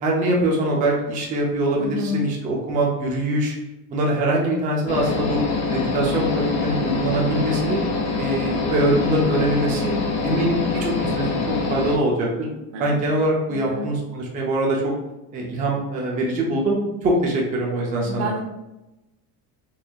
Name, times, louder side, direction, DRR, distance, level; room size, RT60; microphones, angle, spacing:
voice 1, 0.0-3.5 3.9-5.4 5.7-7.8 8.1-9.9 10.2-11.4 11.7-12.5 12.8-14.9 15.3-18.3, right 1 dB, 20° right, -2 dB, 0.3 m, -23 dB
voice 2, 1.8-2.2 12.7-13.0 13.5-14.0 18.0-18.4, left 1 dB, 80° right, 0 dB, 1.1 m, -28 dB
sound 1, 4.9-12.0, left 4 dB, 35° left, 0.5 m, -25 dB
4.4 x 2.4 x 2.3 m, 0.98 s
cardioid pair, 160°, 47 cm